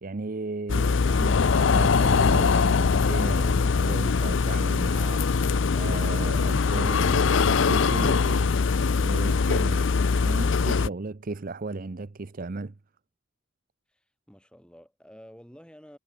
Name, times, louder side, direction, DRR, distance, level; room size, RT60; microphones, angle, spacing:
voice 1, 0.0-8.6 9.0-9.9 10.2-12.7, right 3 dB, 40° right, 0.6 m, -35 dB
sound 1, 0.7-10.9, left 5 dB, 60° left, 0.5 m, -22 dB
voice 2, 13.9-16.0, equal, 5° left, 7.4 m, -50 dB
head